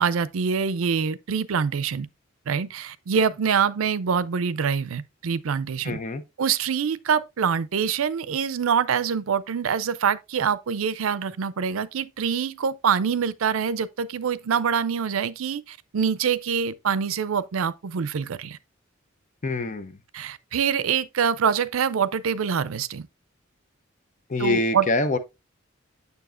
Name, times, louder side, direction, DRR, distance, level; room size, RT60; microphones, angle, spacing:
voice 1, 0.0-2.1 2.5-6.0 6.4-18.6 20.1-23.1 24.4-24.9, right 7 dB, 85° right, 0.5 m, -25 dB
voice 2, 5.8-6.2 19.4-20.0 24.3-25.2, left 2 dB, 40° left, 0.6 m, -25 dB
7.0 x 6.6 x 2.5 m
head